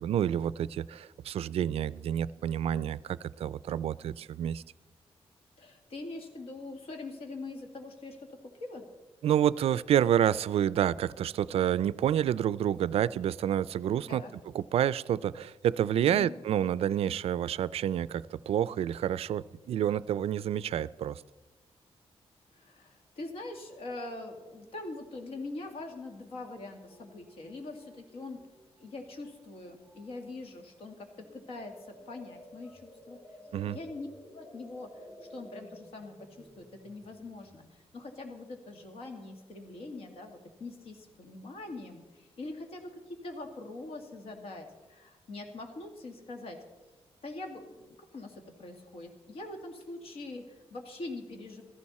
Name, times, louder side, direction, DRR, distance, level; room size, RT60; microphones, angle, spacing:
voice 1, 0.0-4.6 9.2-14.2 14.5-21.2 33.5-33.8, right 10 dB, 70° right, 19 dB, 0.4 m, -28 dB
voice 2, 5.6-8.8 14.1-14.3 16.1-16.3 22.5-28.4 28.8-33.2 33.6-34.1 34.3-34.9 35.3-46.6 47.2-51.6, left 2 dB, 65° left, 4 dB, 2.2 m, -43 dB
sound 1, 26.9-28.9 29.2-29.5 29.8-30.3 30.8-37.7, equal, 10° left, 3.1 m, -54 dB
15.5 x 14.5 x 4.2 m, 1.2 s
wide cardioid pair, 175°, 11 cm